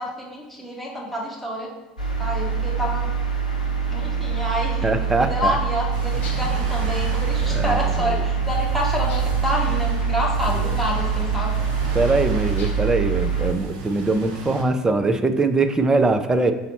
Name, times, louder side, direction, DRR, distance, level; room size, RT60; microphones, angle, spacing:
voice 1, 0.0-1.7 2.2-3.1 3.9-4.9 5.2-11.5, left 1 dB, ahead, -4 dB, 1.7 m, -28 dB
sound 1, 2.0-13.5, right 6 dB, 85° left, 0.7 m, -24 dB
voice 2, 4.8-5.6 7.5-8.2 11.9-16.5, right 3 dB, 15° right, 8 dB, 0.5 m, -22 dB
sound 2, 5.9-14.6, right 5 dB, 60° right, 0.9 m, -34 dB
sound 3, 6.2-6.7 9.1-9.5 12.6-13.0, left 4 dB, 45° left, 1.7 m, -41 dB
5.5 x 4.1 x 4.2 m, 1.1 s
figure-of-eight pair, 65°, 4 cm